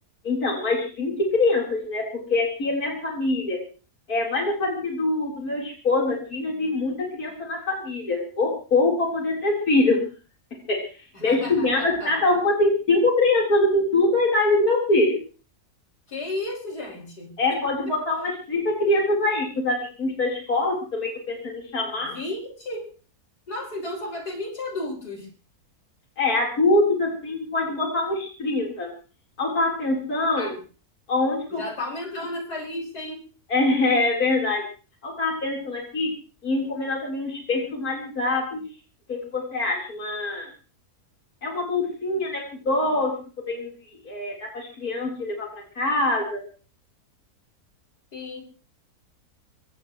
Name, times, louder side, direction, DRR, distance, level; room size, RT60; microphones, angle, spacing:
voice 1, 0.2-2.0 2.3-3.6 4.1-10.0 10.7-10.8 11.2-15.2 17.4-22.1 26.2-28.9 29.4-30.5 31.1-31.6 33.5-34.6 35.0-36.1 36.4-38.6 39.1-40.5 41.4-43.1 43.5-43.7 44.0-45.5 45.8-46.4, left 2 dB, 70° left, -2 dB, 4.5 m, -24 dB
voice 2, 11.1-12.1 16.1-17.6 22.0-22.9 23.5-25.3 30.4-30.6 31.5-33.2 48.1-48.4, left 2 dB, 85° left, 1 dB, 5.7 m, -33 dB
24.0 x 18.0 x 3.1 m, 0.37 s
omnidirectional pair, 1.7 m